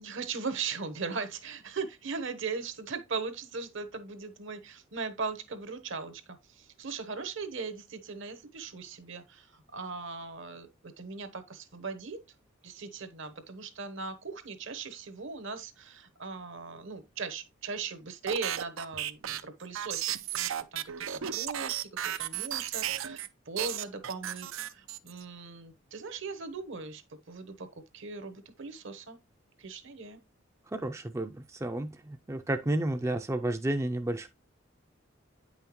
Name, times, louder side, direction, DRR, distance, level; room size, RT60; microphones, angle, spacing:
voice 1, 0.0-12.2 12.6-27.7 27.9-29.2 29.6-30.2, right 4 dB, 70° right, 1.0 m, -39 dB
sound 1, 18.3-23.3 23.6-25.2, right 11 dB, 90° right, 0.5 m, -34 dB
voice 2, 30.7-34.3, right 1 dB, 15° right, 0.4 m, -31 dB
8.8 x 5.6 x 3.0 m
head